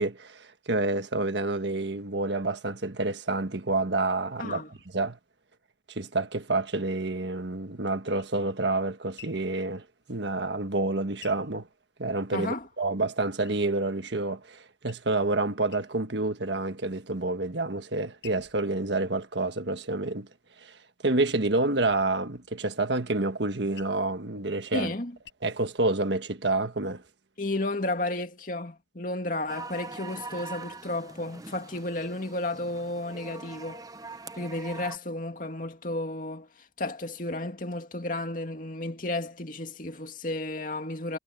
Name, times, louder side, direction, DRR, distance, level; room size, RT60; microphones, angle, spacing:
voice 1, 0.0-4.6 4.9-5.2 5.9-11.7 12.0-20.3 20.6-20.8 21.0-24.9 25.4-27.0, right 2 dB, 75° right, 1.5 m, -28 dB
voice 2, 4.4-4.7 12.3-12.7 24.7-25.1 27.4-33.8 34.3-36.5 36.8-41.2, left 2 dB, 45° left, 2.4 m, -32 dB
sound 1, 7.7-12.5 12.8-14.1 14.5-15.3 15.6-16.3 16.7-17.3 17.8-20.5 21.0-25.3, left 10 dB, 80° left, 5.3 m, -55 dB
sound 2, 29.5-35.0, right 3 dB, 20° right, 0.7 m, -43 dB
head